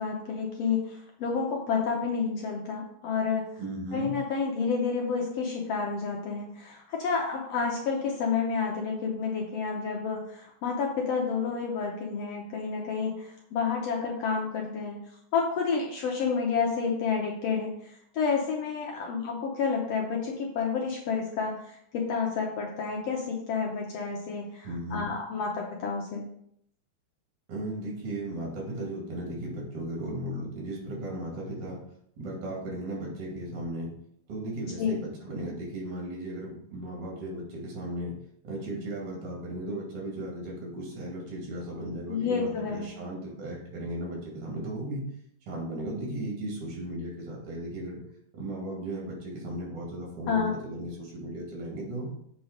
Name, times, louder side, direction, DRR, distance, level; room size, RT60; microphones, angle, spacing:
voice 1, 0.0-3.4 3.9-15.0 15.3-17.7 18.1-26.3 34.8-35.0 42.1-42.9 50.3-50.5, left 5 dB, 65° left, 0 dB, 1.7 m, -30 dB
voice 2, 3.6-4.2 24.6-25.1 27.5-31.8 32.2-33.9 34.3-38.2 38.4-45.1 45.5-48.0 48.3-52.1, right 1 dB, 70° right, -3 dB, 3.8 m, -36 dB
7.8 x 4.0 x 5.0 m, 0.70 s
omnidirectional pair, 3.7 m